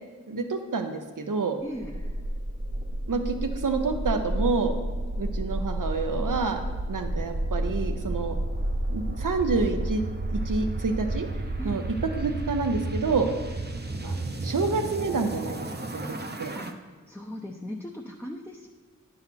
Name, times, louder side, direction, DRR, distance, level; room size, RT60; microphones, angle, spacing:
voice 1, 0.3-1.6 3.1-4.7 5.2-6.6 6.9-8.4 8.9-10.0 10.3-11.3 11.6-13.3 14.0-14.2 14.4-16.0 16.4-16.5, right 4 dB, 85° right, 6 dB, 0.8 m, -28 dB
voice 2, 1.6-1.9 11.6-11.9 16.5-16.7 17.1-18.7, equal, 5° left, -1 dB, 0.7 m, -38 dB
sound 1, 1.7-16.7, right 1 dB, 30° right, 0.7 m, -31 dB
10.0 x 4.0 x 5.8 m, 1.5 s
wide cardioid pair, 55°, 31 cm